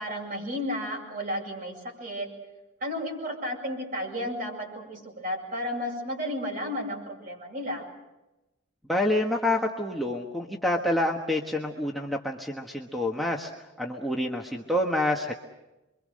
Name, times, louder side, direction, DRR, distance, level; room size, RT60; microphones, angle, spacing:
voice 1, 0.0-2.3 2.8-7.9, equal, 45° right, 0 dB, 7.7 m, -33 dB
voice 2, 8.9-13.5 13.8-15.3, left 1 dB, ahead, 1 dB, 1.4 m, -27 dB
28.0 x 24.0 x 6.5 m, 0.99 s
head